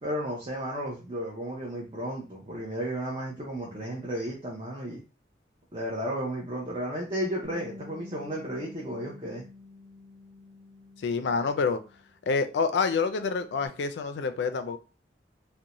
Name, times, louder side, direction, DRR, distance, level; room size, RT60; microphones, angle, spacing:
voice 1, 0.0-5.0 5.7-9.4, equal, 30° right, 0.6 m, -33 dB
Bass guitar, 7.4-12.2 12.5-13.7, left 3 dB, 85° right, 0.9 m, -50 dB
voice 2, 11.0-11.8 12.3-14.8, left 4 dB, 75° left, 0.3 m, -27 dB
2.5 x 2.1 x 2.9 m
head